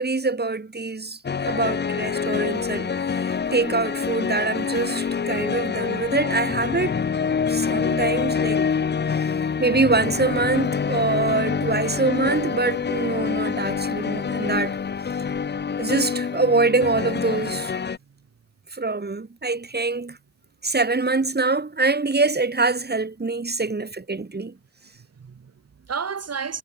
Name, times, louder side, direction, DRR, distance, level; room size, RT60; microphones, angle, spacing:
voice 1, 0.0-6.9 7.5-8.6 9.6-14.8 15.8-17.7 18.7-20.2 20.6-24.5, right 3 dB, 35° right, 4.4 m, -24 dB
sound 1, 1.2-18.0, left 6 dB, 35° left, 0.8 m, -26 dB
voice 2, 17.8-18.3 24.8-26.6, right 6 dB, 55° right, 3.6 m, -34 dB
supercardioid pair, 40°, 30 cm